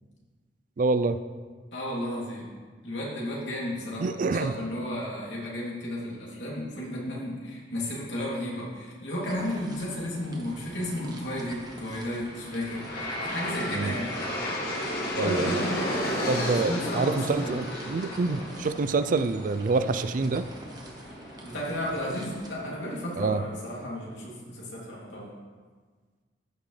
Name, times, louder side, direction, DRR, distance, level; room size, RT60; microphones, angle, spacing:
voice 1, 0.8-1.2 4.0-4.5 13.7-13.9 15.2-15.5 16.3-20.5 23.2-23.4, right 3 dB, 50° right, 12 dB, 0.4 m, -26 dB
voice 2, 1.7-2.5 2.8-12.9 13.2-14.1 15.1-17.6 21.4-25.3, equal, 85° left, -5 dB, 2.7 m, -33 dB
sound 1, 9.3-22.5, right 1 dB, 25° right, 1.0 m, -46 dB
Aircraft, 11.8-22.9, left 1 dB, 60° left, 1.8 m, -34 dB
14.5 x 6.2 x 3.3 m, 1.5 s
head